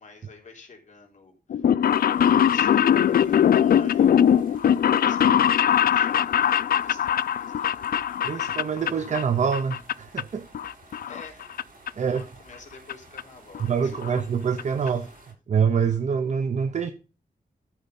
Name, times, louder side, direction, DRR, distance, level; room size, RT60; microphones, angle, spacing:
voice 1, 0.0-1.7 2.1-7.9 10.9-11.5 12.0-14.2 14.8-15.1, left 4 dB, 55° left, 3.4 m, -48 dB
sound 1, 1.5-9.2 9.5-10.2 10.5-11.6 11.9-12.0 12.9-13.0 13.2-13.3 13.5-13.6 13.9-14.2 14.6-14.7 14.9-15.0, left 9 dB, 85° left, 0.4 m, -21 dB
sound 2, 1.8-15.3, right 2 dB, 75° right, 6.9 m, -52 dB
voice 2, 8.2-10.5 12.0-12.2 13.6-15.1 15.5-16.9, right 6 dB, 55° right, 0.7 m, -25 dB
13.5 x 5.1 x 5.3 m
wide cardioid pair, 160°, 15 cm